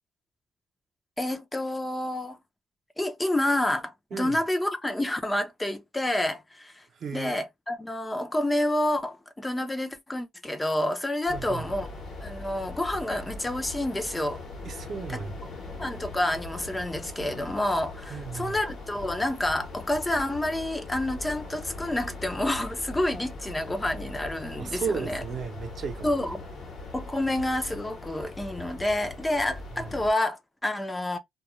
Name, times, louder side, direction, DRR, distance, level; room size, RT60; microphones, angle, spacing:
voice 1, 1.2-2.4 3.0-6.8 7.1-11.9 12.2-14.4 15.1-15.2 15.8-25.2 26.0-26.5 26.9-31.2, left 1 dB, 15° left, 0.5 m, -29 dB
voice 2, 7.0-7.4 11.3-11.7 14.6-15.3 18.1-18.6 24.6-26.1 29.7-29.9, right 6 dB, 55° right, 0.6 m, -34 dB
sound 1, 11.3-30.1, left 3 dB, 60° left, 1.0 m, -40 dB
2.3 x 2.1 x 2.9 m
cardioid pair, 90°, 0 cm